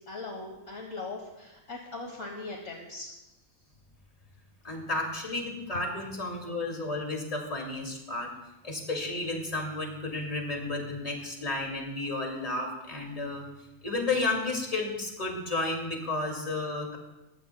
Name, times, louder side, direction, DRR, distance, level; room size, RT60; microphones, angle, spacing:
voice 1, 0.0-3.1, left 3 dB, 55° left, 1 dB, 1.6 m, -40 dB
voice 2, 4.6-8.3 8.6-13.5 13.8-17.0, left 2 dB, 25° left, 1 dB, 2.3 m, -32 dB
20.0 x 15.0 x 2.2 m, 0.96 s
omnidirectional pair, 1.5 m